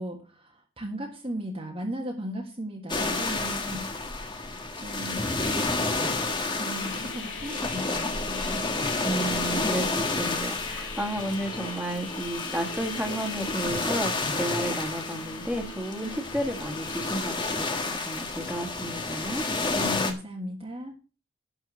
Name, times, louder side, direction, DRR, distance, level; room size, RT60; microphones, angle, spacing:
voice 1, 0.0-3.9 4.1-4.5 4.8-5.4 6.6-8.7 19.7-21.0, equal, 25° right, 0 dB, 1.6 m, -36 dB
sound 1, 2.9-20.1, left 3 dB, 20° left, 1.5 m, -30 dB
sound 2, 6.7-17.2, left 3 dB, 75° left, 4.1 m, -41 dB
voice 2, 9.0-19.4, right 1 dB, 5° right, 2 dB, 2.1 m, -32 dB
12.0 x 4.5 x 8.3 m, 0.33 s
head